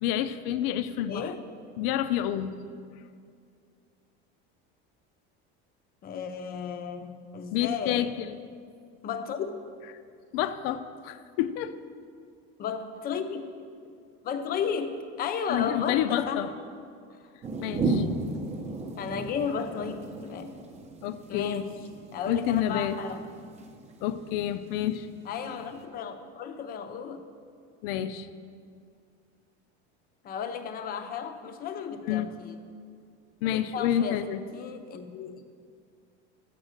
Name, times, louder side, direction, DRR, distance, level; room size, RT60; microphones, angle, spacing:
voice 1, 0.0-1.3 1.8-2.6 7.5-8.4 10.3-11.8 15.5-16.5 17.6-18.0 21.0-21.6 22.3-23.0 24.0-25.1 27.8-28.3 32.0-32.3 33.4-34.4, left 11 dB, 75° left, 12 dB, 0.5 m, -28 dB
voice 2, 1.1-1.4 6.0-8.1 9.0-9.6 12.6-13.5 14.2-16.5 17.1-17.3 19.0-20.5 21.3-21.7 22.1-23.3 25.3-27.2 30.2-32.6 33.4-35.4, left 6 dB, 30° left, 8 dB, 0.6 m, -34 dB
sound 1, 17.4-25.8, right 2 dB, 25° right, 0.6 m, -35 dB
7.5 x 7.2 x 6.5 m, 2.3 s
cardioid pair, 155°, 29 cm